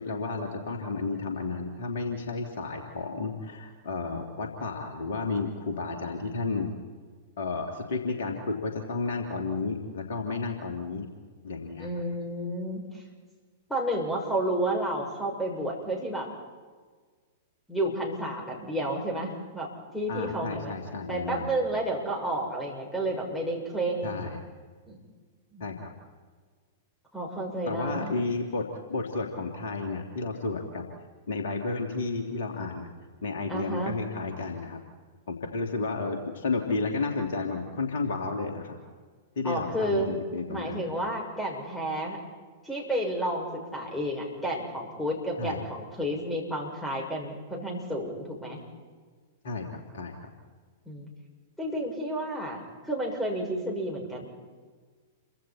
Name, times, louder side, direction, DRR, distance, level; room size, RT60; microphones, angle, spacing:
voice 1, 0.0-6.7 7.4-11.1 11.4-11.9 20.1-21.6 24.0-24.4 25.6-25.9 27.7-30.9 31.3-32.9 33.2-34.8 35.3-38.8 39.3-40.8 45.4-45.6 49.4-49.7 49.9-50.3, left 3 dB, 55° left, 2 dB, 2.9 m, -32 dB
voice 2, 11.8-13.0 13.7-16.3 17.7-20.7 21.1-24.3 24.9-25.0 25.5-25.6 27.1-28.1 33.5-34.0 39.4-40.1 40.5-42.2 42.6-48.6 50.9-51.1 51.6-54.3, right 1 dB, 5° left, -1 dB, 6.1 m, -31 dB
29.0 x 24.5 x 4.4 m, 1.5 s
figure-of-eight pair, 100°, 0 cm